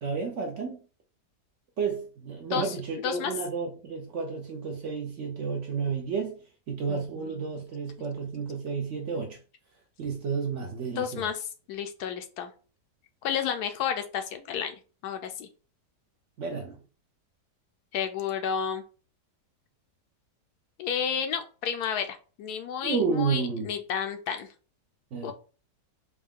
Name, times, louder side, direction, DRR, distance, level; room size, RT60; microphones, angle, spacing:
voice 1, 0.0-0.8 1.8-6.4 6.7-9.4 10.0-11.3 16.4-16.8 22.8-23.7 25.1-25.3, right 5 dB, 60° right, 0.8 m, -31 dB
voice 2, 11.0-12.5 13.2-14.8 15.0-15.5 17.9-18.8 20.8-24.5 25.2-25.3, left 8 dB, 75° left, 1.0 m, -31 dB
4.4 x 2.2 x 3.6 m
omnidirectional pair, 1.8 m